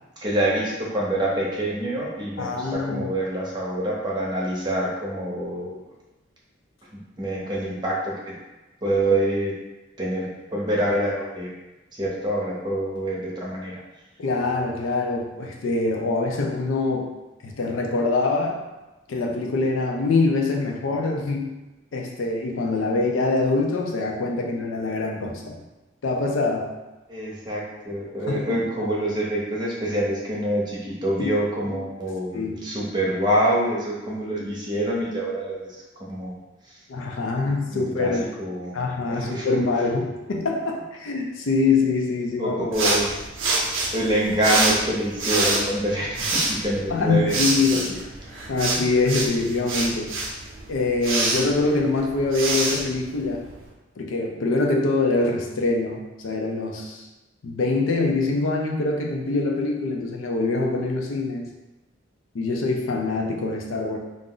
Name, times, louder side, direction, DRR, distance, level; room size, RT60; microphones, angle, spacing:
voice 1, 0.2-5.9 6.9-8.1 8.8-9.5 10.0-11.5 12.0-13.7 27.1-35.8 36.1-36.4 36.7-36.8 37.7-38.1 38.4-38.8 39.1-39.5 42.4-43.2 43.9-47.3 47.7-48.0, right 1 dB, 25° right, -5 dB, 0.7 m, -26 dB
voice 2, 2.4-3.1 14.2-17.1 17.4-18.6 19.1-21.5 21.9-25.6 26.0-26.7 28.3-28.6 31.2-31.3 32.1-32.6 36.9-38.3 38.7-42.6 42.8-42.9 46.9-47.9 48.5-50.1 50.7-53.4 54.0-57.0 57.4-61.5 62.3-64.0, left 3 dB, 85° left, 0 dB, 0.5 m, -24 dB
sound 1, 42.7-53.7, right 2 dB, 85° right, 0.6 m, -26 dB
2.4 x 2.0 x 3.7 m, 1.1 s
head